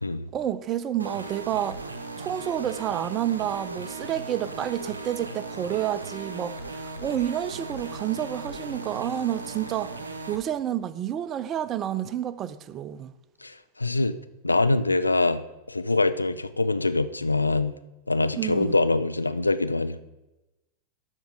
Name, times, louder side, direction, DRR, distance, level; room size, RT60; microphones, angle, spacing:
voice 1, 0.3-1.8 2.2-9.9 10.3-13.1 18.4-18.7, right 11 dB, 30° right, 0.5 m, -29 dB
sound 1, 1.0-10.4, right 3 dB, 75° right, 0.7 m, -37 dB
voice 2, 13.4-14.1 14.4-15.4 15.7-17.7 18.1-20.0, left 2 dB, 80° left, 0.4 m, -24 dB
12.5 x 4.5 x 5.1 m
figure-of-eight pair, 90°, 0 cm